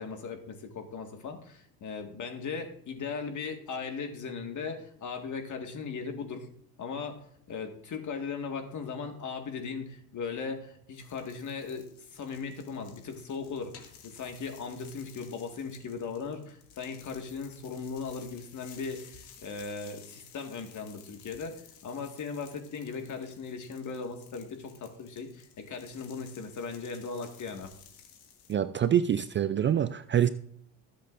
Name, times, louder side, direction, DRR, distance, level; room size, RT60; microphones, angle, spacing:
voice 1, 0.0-6.5 6.8-7.2 7.5-27.7, left 5 dB, 45° left, 4 dB, 1.9 m, -38 dB
sound 1, 10.9-28.5, left 8 dB, 85° left, 2.3 m, -55 dB
voice 2, 28.5-30.3, right 9 dB, 30° right, 12 dB, 0.4 m, -25 dB
20.0 x 7.9 x 2.6 m, 0.69 s
cardioid pair, 105°, 40 cm